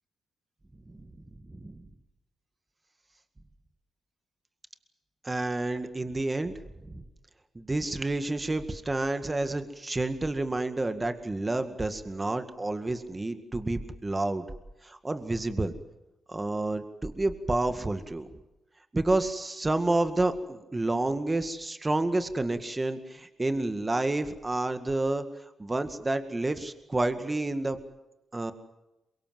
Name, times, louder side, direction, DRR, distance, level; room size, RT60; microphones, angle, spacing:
voice 1, 1.5-1.9 5.2-6.5 6.9-7.0 7.6-14.4 14.8-15.7 16.3-18.3 18.9-27.8 28.3-28.5, right 2 dB, 25° right, 9 dB, 2.0 m, -29 dB
23.0 x 22.5 x 7.7 m, 0.95 s
cardioid pair, 60°, 0 cm